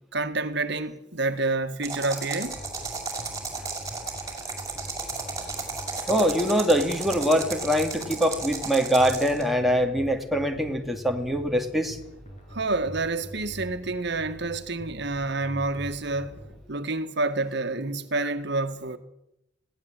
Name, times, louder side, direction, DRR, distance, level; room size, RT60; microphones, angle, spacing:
voice 1, 0.1-2.5 12.5-16.4 16.7-19.0, right 3 dB, 65° right, 1.9 m, -28 dB
sound 1, 1.8-9.4, right 4 dB, 20° right, 6.0 m, -34 dB
sound 2, 2.4-16.6, equal, 35° left, 7.8 m, -44 dB
voice 2, 6.1-12.0, equal, ahead, 2.6 m, -23 dB
22.0 x 17.0 x 9.1 m
head